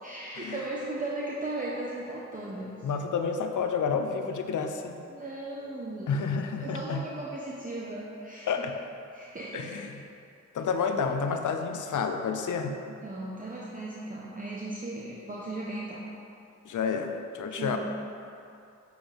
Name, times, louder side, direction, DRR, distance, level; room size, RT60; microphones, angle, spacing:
voice 1, 0.0-2.9 5.1-6.1 6.6-8.7 9.1-9.8 12.9-16.0 17.4-17.8, right 2 dB, 25° right, -5 dB, 1.0 m, -37 dB
voice 2, 2.8-5.0 6.1-7.0 8.5-8.7 9.5-9.9 10.5-12.8 16.7-17.8, left 5 dB, 80° left, 5 dB, 0.7 m, -30 dB
7.9 x 7.0 x 3.5 m, 2.6 s
cardioid pair, 60°, 30 cm